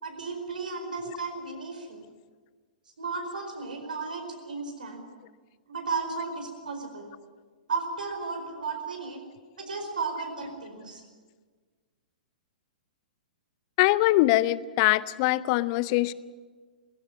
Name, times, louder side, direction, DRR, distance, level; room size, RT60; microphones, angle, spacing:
voice 1, 0.0-2.0 3.0-5.1 5.7-7.1 7.7-9.2 9.6-11.0, right 4 dB, 70° right, 4 dB, 4.7 m, -34 dB
voice 2, 13.8-16.1, left 18 dB, 40° left, 18 dB, 0.7 m, -23 dB
18.5 x 16.0 x 9.8 m, 1.5 s
figure-of-eight pair, 110°, 5 cm